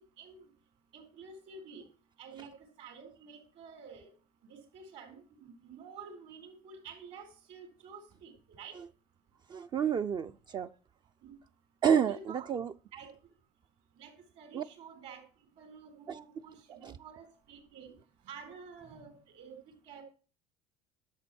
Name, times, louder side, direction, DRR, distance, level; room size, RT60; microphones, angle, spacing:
voice 1, 0.9-1.8 2.2-4.1 4.5-8.8 11.2-11.3 12.0-12.5 12.9-13.1 14.0-15.3 15.6-18.0 18.2-19.6 19.9-20.0, right 5 dB, 60° right, 4 dB, 4.0 m, -50 dB
voice 2, 9.5-10.7 11.8-12.7 14.5-14.6 16.1-16.2 16.7-16.9, right 8 dB, 30° right, 10 dB, 0.4 m, -30 dB
11.5 x 6.9 x 4.2 m, 0.38 s
cardioid pair, 115°, 14 cm